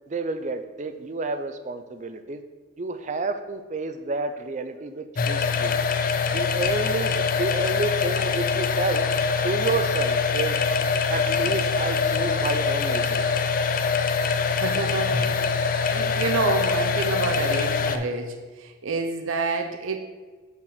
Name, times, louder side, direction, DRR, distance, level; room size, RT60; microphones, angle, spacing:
voice 1, 0.1-2.4 2.8-5.8 6.3-9.1 9.4-10.6 11.1-13.3, right 3 dB, 35° right, 9 dB, 0.5 m, -30 dB
sound 1, 5.2-18.0, left 5 dB, 40° left, 0.4 m, -24 dB
voice 2, 14.5-20.0, right 3 dB, 80° right, 4 dB, 0.6 m, -29 dB
5.9 x 4.5 x 6.4 m, 1.4 s
head